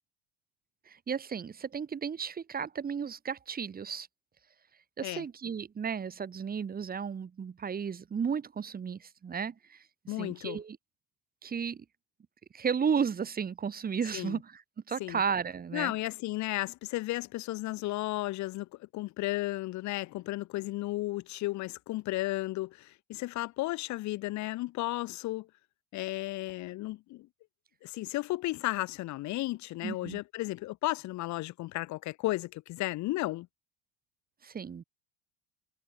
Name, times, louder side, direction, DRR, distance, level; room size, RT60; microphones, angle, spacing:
voice 1, 0.9-4.1 5.0-10.8 11.4-11.8 12.5-15.9 29.8-30.2 34.4-34.8, right 6 dB, 25° right, 7.7 m, -34 dB
voice 2, 10.1-10.6 14.1-14.4 15.0-15.2 15.7-25.5 25.9-27.3 27.8-33.5, left 18 dB, 60° left, 7.8 m, -34 dB
supercardioid pair, 120°, 33 cm